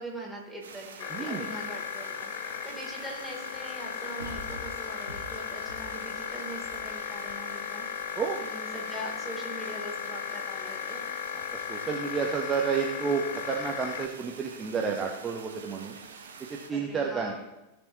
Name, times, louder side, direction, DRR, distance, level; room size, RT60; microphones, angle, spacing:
voice 1, 0.0-8.1 8.4-11.0 16.7-17.3, right 1 dB, ahead, -4 dB, 3.2 m, -42 dB
sound 1, 0.6-16.7, right 5 dB, 65° right, 1.2 m, -47 dB
sound 2, 1.0-14.1, left 9 dB, 50° left, 0.7 m, -36 dB
voice 2, 1.1-1.4 8.2-8.4 11.7-13.2 13.5-16.0 16.7-17.3, right 6 dB, 20° right, 0 dB, 1.1 m, -30 dB
sound 3, 2.4-2.5 4.2-7.5 8.0-8.1, equal, 85° left, 2.0 m, -46 dB
16.5 x 6.7 x 3.0 m, 1.0 s
figure-of-eight pair, 90°, 0 cm